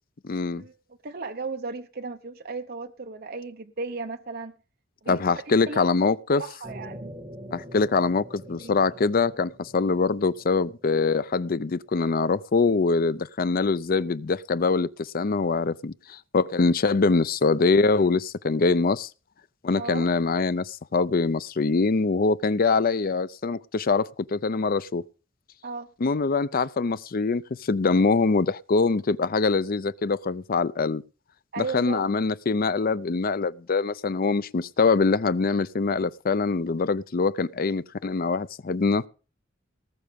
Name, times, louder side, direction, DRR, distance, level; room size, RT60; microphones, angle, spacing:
voice 1, 0.2-0.6 5.1-6.4 7.5-19.1 19.6-25.0 26.0-31.0 31.6-39.1, left 4 dB, 45° left, 0.5 m, -24 dB
voice 2, 1.0-4.5 5.0-5.2 5.6-5.8 6.3-7.1 8.5-8.7 19.7-20.1 25.6-25.9 31.5-32.1, right 4 dB, 50° right, 0.8 m, -35 dB
sound 1, 6.6-11.7, equal, 20° right, 1.5 m, -44 dB
19.0 x 6.5 x 5.2 m
head